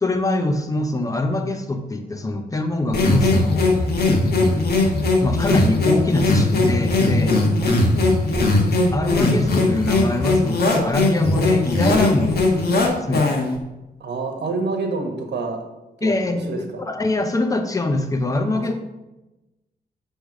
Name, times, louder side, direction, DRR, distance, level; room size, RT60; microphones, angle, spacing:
voice 1, 0.0-3.8 5.2-7.4 8.9-13.3 16.0-18.7, left 2 dB, 20° left, 5 dB, 0.7 m, -24 dB
sound 1, 2.9-13.6, left 2 dB, 70° left, 1.3 m, -19 dB
voice 2, 14.0-15.6 16.0-16.2 16.5-16.6 18.5-18.7, right 3 dB, 85° right, 3 dB, 1.4 m, -27 dB
8.3 x 3.3 x 6.1 m, 1.0 s
wide cardioid pair, 165°, 17 cm